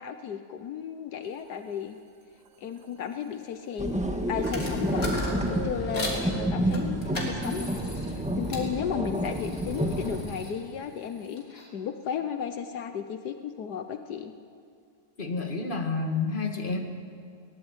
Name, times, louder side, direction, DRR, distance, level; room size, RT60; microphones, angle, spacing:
voice 1, 0.0-2.0 2.6-4.0 4.3-5.1 5.4-7.8 8.1-14.3, left 8 dB, 75° left, 8 dB, 1.5 m, -34 dB
sound 1, 2.5-2.6 2.8-6.5, right 3 dB, 75° right, 1.6 m, -41 dB
sound 2, 3.8-10.3, equal, 5° right, 1.7 m, -29 dB
sound 3, 4.4-6.2 6.7-8.7 9.0-11.7, left 1 dB, 50° left, 4.0 m, -38 dB
voice 2, 15.2-16.8, left 4 dB, 30° left, 3 dB, 2.2 m, -29 dB
22.5 x 18.5 x 8.1 m, 2.3 s
omnidirectional pair, 1.7 m